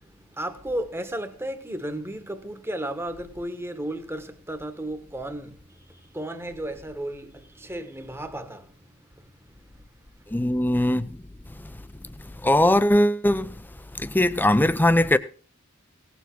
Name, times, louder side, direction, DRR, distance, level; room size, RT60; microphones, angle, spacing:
voice 1, 0.0-9.8, right 1 dB, 10° right, 1.4 m, -34 dB
voice 2, 10.3-11.2 12.4-13.5 13.9-15.2, left 1 dB, 10° left, 0.7 m, -20 dB
17.5 x 7.2 x 6.1 m
head